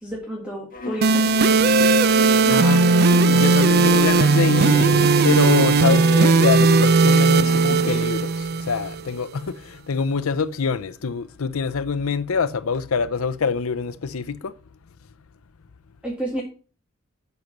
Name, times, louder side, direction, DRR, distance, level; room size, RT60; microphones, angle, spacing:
voice 1, 0.0-1.6 2.4-2.7 16.0-16.4, right 1 dB, 5° right, 1.9 m, -31 dB
Bowed string instrument, 0.7-8.1, left 2 dB, 40° left, 1.3 m, -32 dB
sound 1, 1.0-9.0, right 4 dB, 50° right, 0.5 m, -17 dB
voice 2, 2.1-14.5, left 5 dB, 80° left, 0.6 m, -25 dB
8.1 x 6.0 x 5.3 m
head